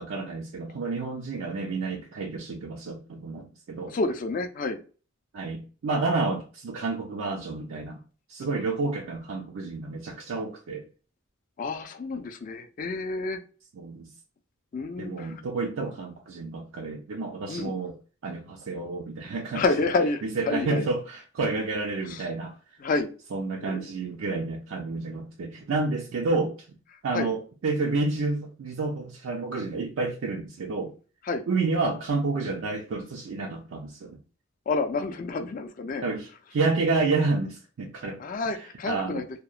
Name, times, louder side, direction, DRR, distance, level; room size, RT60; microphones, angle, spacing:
voice 1, 0.0-3.9 5.3-8.0 8.3-10.8 13.8-14.1 15.0-18.0 18.2-19.6 20.2-22.6 23.3-26.6 27.0-30.9 31.5-34.2 36.0-38.2 38.8-39.2, right 3 dB, 70° right, 0.4 m, -30 dB
voice 2, 3.9-4.8 11.6-13.4 14.7-15.4 17.5-17.7 19.5-20.9 22.1-22.2 22.8-23.1 23.6-23.9 27.1-27.3 31.3-31.4 34.7-36.0 38.0-39.2, left 3 dB, 40° left, 0.3 m, -29 dB
2.8 x 2.1 x 2.3 m
head